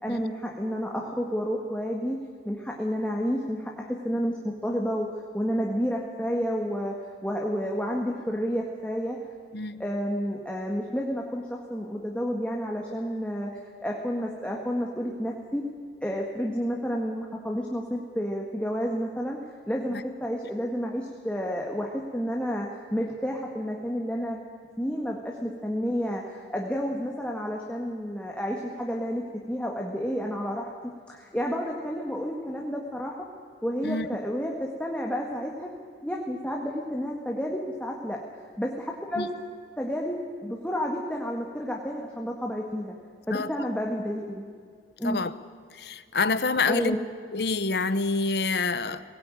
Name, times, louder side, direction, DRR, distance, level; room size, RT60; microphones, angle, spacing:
voice 1, 0.0-2.2 2.4-9.2 9.8-13.5 13.8-15.6 16.0-19.4 19.7-24.5 24.8-30.7 31.1-33.1 33.6-35.7 36.0-39.3 39.8-42.9 43.3-44.4 45.0-45.2 46.7-47.0, equal, 5° left, -1 dB, 1.8 m, -30 dB
voice 2, 45.7-47.0 47.3-49.0, left 3 dB, 65° left, 13 dB, 1.0 m, -27 dB
21.5 x 17.5 x 9.1 m, 2.1 s
head